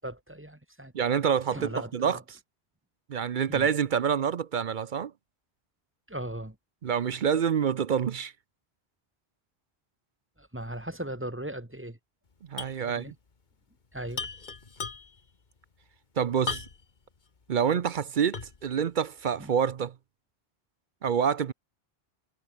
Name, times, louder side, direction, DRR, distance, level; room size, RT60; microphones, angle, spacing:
voice 1, 0.0-0.9 1.5-2.2 3.5-3.7 6.1-6.6 10.4-12.0 12.8-13.1 13.9-14.3 19.4-19.5, right 1 dB, 10° right, 1.9 m, -38 dB
voice 2, 0.9-2.2 3.1-5.1 6.8-8.3 12.5-13.1 16.2-16.6 17.5-19.9 21.0-21.5, right 7 dB, 55° right, 0.7 m, -27 dB
sound 1, 12.6-12.8 13.1-13.2 14.1-15.3 16.5-17.0 17.5-17.6 18.3-18.7, left 4 dB, 45° left, 1.5 m, -36 dB
omnidirectional pair, 1.1 m